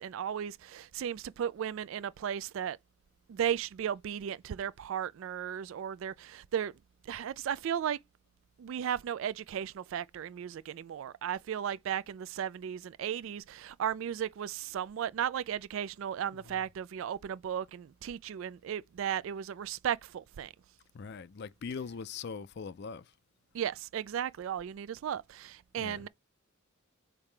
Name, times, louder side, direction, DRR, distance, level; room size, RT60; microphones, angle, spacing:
voice 1, 0.0-2.8 3.3-6.7 7.0-8.0 8.6-20.5 23.5-26.1, right 9 dB, 65° right, 0.3 m, -35 dB
voice 2, 16.3-16.7 20.9-23.1 25.8-26.1, left 5 dB, 50° left, 0.4 m, -42 dB
7.2 x 4.8 x 3.3 m
head